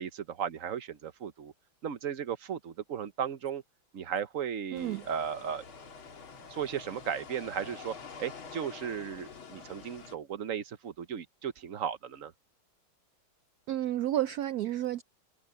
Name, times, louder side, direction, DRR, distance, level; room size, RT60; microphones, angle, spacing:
voice 1, 0.0-1.5 1.8-3.6 3.9-5.6 6.5-12.3, right 8 dB, 55° right, 1.0 m, -36 dB
sound 1, 4.7-10.2, left 5 dB, 80° left, 3.2 m, -47 dB
voice 2, 4.7-5.0 13.7-15.0, right 13 dB, 85° right, 0.8 m, -31 dB
omnidirectional pair, 2.2 m